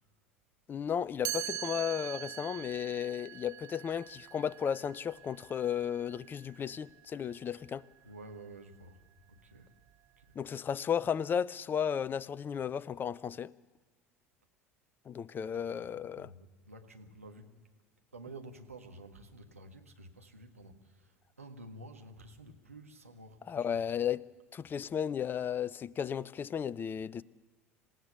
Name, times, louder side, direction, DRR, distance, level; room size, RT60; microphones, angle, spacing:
voice 1, 0.7-7.8 10.4-13.5 15.1-16.3 23.5-24.2 24.5-27.2, left 8 dB, 30° left, 0.6 m, -34 dB
Chime, 1.3-7.1, right 13 dB, 45° right, 0.7 m, -43 dB
voice 2, 8.0-9.7 10.2-10.4 15.5-15.8 16.2-17.5 18.1-23.8, right 2 dB, 85° right, 1.7 m, -51 dB
27.5 x 17.0 x 6.9 m
figure-of-eight pair, 70°, 7 cm